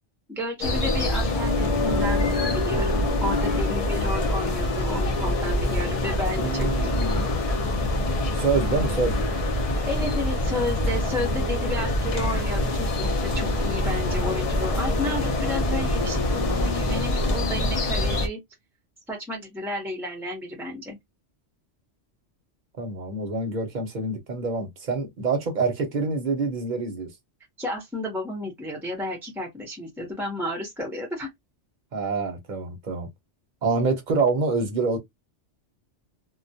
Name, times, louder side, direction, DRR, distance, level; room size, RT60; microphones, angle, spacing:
voice 1, 0.3-6.9 9.9-18.4 19.1-21.0 27.6-31.3, left 1 dB, ahead, 0.5 m, -32 dB
sound 1, 0.6-18.3, left 1 dB, 50° left, 0.4 m, -25 dB
voice 2, 6.4-7.3 8.3-9.2 22.8-27.1 31.9-33.1 33.6-35.0, right 4 dB, 45° right, 0.8 m, -26 dB
2.2 x 2.1 x 2.6 m
omnidirectional pair, 1.2 m